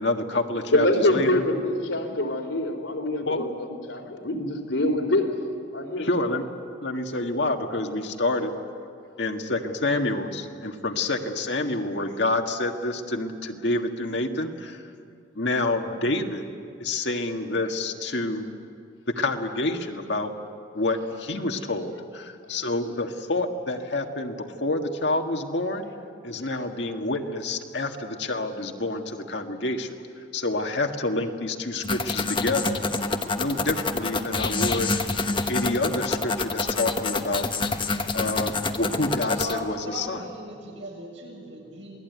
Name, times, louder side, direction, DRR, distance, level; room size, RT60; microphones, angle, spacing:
voice 1, 0.0-1.4 3.3-3.4 6.0-6.4 6.8-8.5 9.2-14.8 15.3-16.4 16.8-18.5 19.1-20.3 20.7-25.9 26.2-29.9 30.3-35.0 35.5-37.5 38.1-40.2, left 2 dB, 60° left, 4 dB, 1.7 m, -28 dB
voice 2, 0.7-5.4 5.7-6.1 38.1-38.2, left 1 dB, 80° left, 2 dB, 3.6 m, -25 dB
sound 1, 31.8-39.6, left 3 dB, 25° left, 1.1 m, -27 dB
voice 3, 39.2-42.0, equal, 70° right, -1 dB, 7.3 m, -38 dB
27.5 x 19.5 x 9.4 m, 2.4 s
head